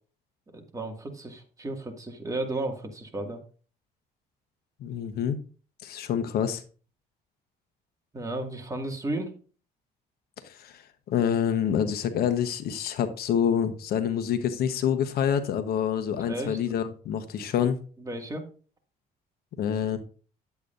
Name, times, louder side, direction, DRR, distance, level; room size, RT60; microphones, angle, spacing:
voice 1, 0.5-3.4 8.1-9.3 16.2-16.6 18.0-18.5, right 2 dB, 20° right, 2 dB, 2.1 m, -33 dB
voice 2, 4.8-5.4 5.8-6.6 10.4-10.8 11.1-17.8 19.6-20.0, left 8 dB, 65° left, 9 dB, 1.1 m, -27 dB
10.5 x 8.2 x 2.6 m, 0.38 s
cardioid pair, 110°, 17 cm